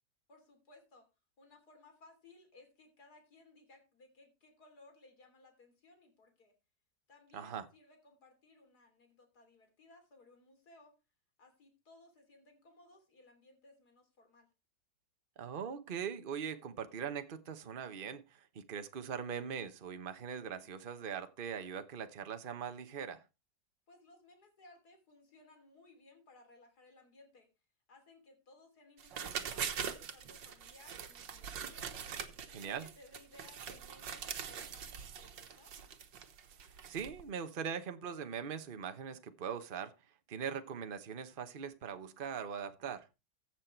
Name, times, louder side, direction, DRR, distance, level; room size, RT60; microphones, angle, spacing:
voice 1, 0.3-1.1 1.4-6.5 7.1-10.9 11.4-14.5 23.9-27.5 27.9-32.1 32.5-35.7, left 2 dB, 60° left, 3.7 m, -61 dB
voice 2, 7.3-7.7 15.4-23.2 32.5-32.9 36.9-39.9 40.3-43.1, right 7 dB, 35° right, 1.0 m, -41 dB
sound 1, 29.0-37.2, right 7 dB, 85° right, 1.9 m, -43 dB
15.0 x 6.5 x 4.5 m
omnidirectional pair, 1.9 m